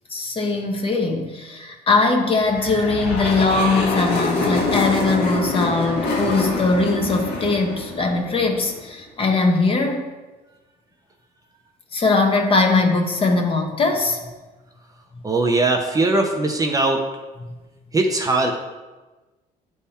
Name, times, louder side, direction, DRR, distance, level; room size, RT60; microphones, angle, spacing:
voice 1, 0.1-10.0 11.9-14.2 17.4-17.5, left 3 dB, 35° left, 3 dB, 1.1 m, -20 dB
sound 1, 2.4-8.8, left 2 dB, 90° left, 1.5 m, -25 dB
voice 2, 15.2-17.0 17.9-18.5, right 2 dB, 20° right, 2 dB, 0.7 m, -20 dB
9.9 x 3.5 x 4.3 m, 1.2 s
cardioid pair, 110°, 17 cm